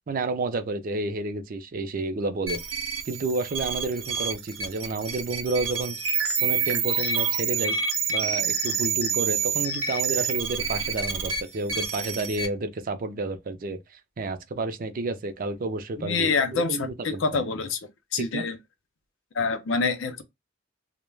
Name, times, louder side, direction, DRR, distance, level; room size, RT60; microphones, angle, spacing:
voice 1, 0.1-2.6 3.1-6.0 6.4-7.8 8.1-13.8 14.2-17.4 18.2-18.5, right 3 dB, 45° right, 0.4 m, -30 dB
sound 1, 2.5-12.5, right 6 dB, 80° right, 0.7 m, -28 dB
voice 2, 16.0-17.8 18.1-18.6 19.3-20.2, left 4 dB, 75° left, 0.5 m, -26 dB
2.2 x 2.1 x 3.1 m
head